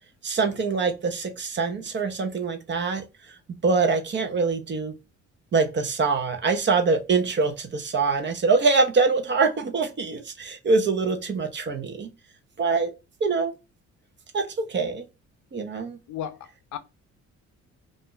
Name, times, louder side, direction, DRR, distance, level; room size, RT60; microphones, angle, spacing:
voice 1, 0.2-3.0 3.5-5.0 5.5-12.1 12.6-12.9 13.2-13.6 14.3-15.0 15.5-16.0, right 4 dB, 40° right, 0.6 m, -24 dB
voice 2, 16.1-16.8, left 10 dB, 70° left, 0.5 m, -35 dB
2.5 x 2.1 x 3.8 m
cardioid pair, 90°, 30 cm